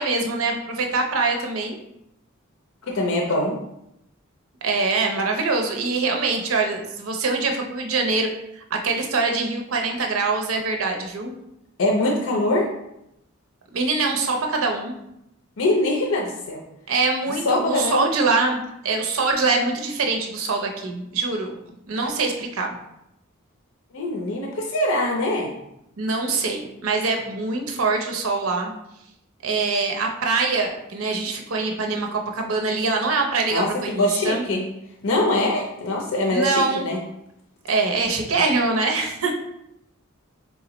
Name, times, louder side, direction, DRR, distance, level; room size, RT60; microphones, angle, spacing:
voice 1, 0.0-1.8 4.6-11.3 13.7-14.9 16.9-21.6 21.9-22.8 26.0-28.7 29.4-34.4 36.3-36.9 37.6-39.4, right 3 dB, 80° right, 3 dB, 0.6 m, -24 dB
voice 2, 2.9-3.6 11.8-12.7 15.6-16.6 17.4-18.1 23.9-25.5 33.5-33.7 34.0-34.6 35.0-37.0, left 1 dB, 75° left, 1 dB, 0.5 m, -23 dB
4.1 x 3.6 x 3.0 m, 0.83 s
head